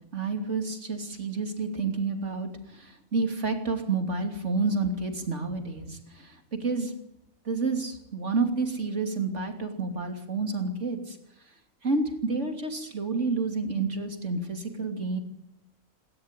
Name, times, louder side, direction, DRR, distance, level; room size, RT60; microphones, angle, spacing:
voice 1, 0.1-2.5 2.8-6.0 6.6-6.9 7.5-11.2 11.8-15.2, right 3 dB, 55° right, 5 dB, 3.3 m, -29 dB
27.5 x 13.0 x 9.9 m, 0.84 s
omnidirectional pair, 1.4 m